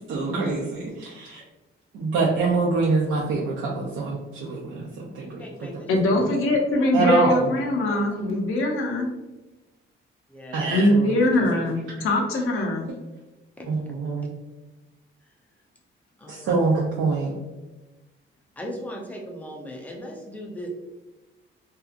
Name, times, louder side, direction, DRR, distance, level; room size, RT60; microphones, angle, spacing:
voice 1, 0.0-1.4 1.9-5.7 6.9-7.5 10.5-11.4 13.7-14.3 16.3-17.3, right 3 dB, 75° right, -4 dB, 0.6 m, -25 dB
voice 2, 5.2-5.9 6.1-6.3 7.9-8.1 10.3-10.7 13.6-13.7 16.2-16.5 18.6-20.7, equal, 5° left, -1 dB, 0.4 m, -38 dB
voice 3, 5.9-9.1 10.7-12.9, left 1 dB, 80° left, 0 dB, 0.6 m, -22 dB
2.7 x 2.4 x 2.4 m, 1.1 s
cardioid pair, 160°, 21 cm